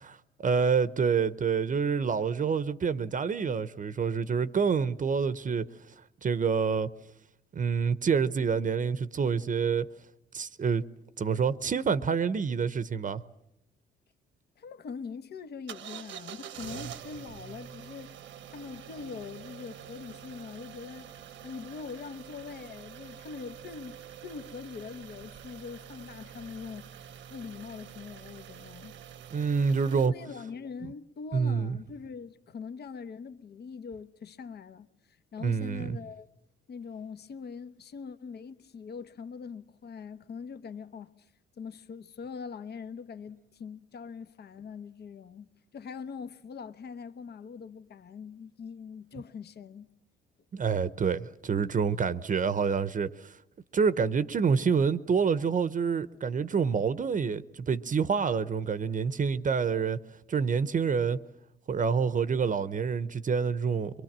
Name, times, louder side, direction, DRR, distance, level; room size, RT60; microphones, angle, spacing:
voice 1, 0.4-5.9 6.2-6.9 7.5-9.9 10.3-10.8 11.2-13.2 29.3-30.1 30.8-30.9 31.3-31.8 35.4-36.0 50.5-53.4 53.7-60.0 60.3-61.2 61.7-64.0, right 6 dB, 40° right, 0.9 m, -27 dB
voice 2, 14.6-18.2 18.5-27.0 27.3-29.0 29.9-36.3 36.7-41.3 41.6-49.9, left 5 dB, 55° left, 1.1 m, -43 dB
sound 1, 15.7-30.1, right 9 dB, 70° right, 1.1 m, -46 dB
23.5 x 23.5 x 7.4 m
cardioid pair, 90°, 20 cm